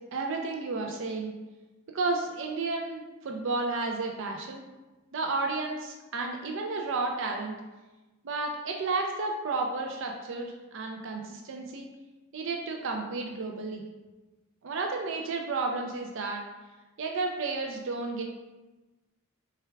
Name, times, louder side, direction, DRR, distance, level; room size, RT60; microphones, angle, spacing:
voice 1, 0.1-1.3 1.9-4.6 5.1-7.6 8.2-11.9 12.3-13.8 14.6-16.4 17.0-18.2, right 3 dB, 60° right, 2 dB, 0.4 m, -32 dB
4.5 x 3.4 x 3.4 m, 1.1 s
head